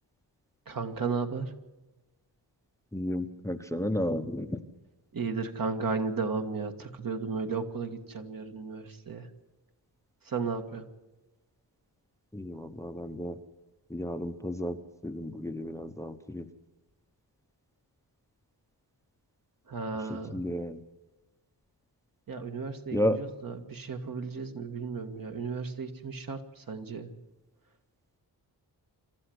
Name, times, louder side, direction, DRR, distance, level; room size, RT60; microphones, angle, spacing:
voice 1, 0.7-1.5 5.1-9.3 10.3-10.8 19.7-20.4 22.3-27.1, right 4 dB, 50° right, 6 dB, 1.9 m, -34 dB
voice 2, 2.9-4.5 12.3-13.3 13.9-14.7 15.0-16.4 20.3-20.8 22.9-23.2, left 1 dB, 5° left, 9 dB, 0.8 m, -32 dB
27.5 x 13.5 x 7.9 m, 1.1 s
wide cardioid pair, 165°, 42 cm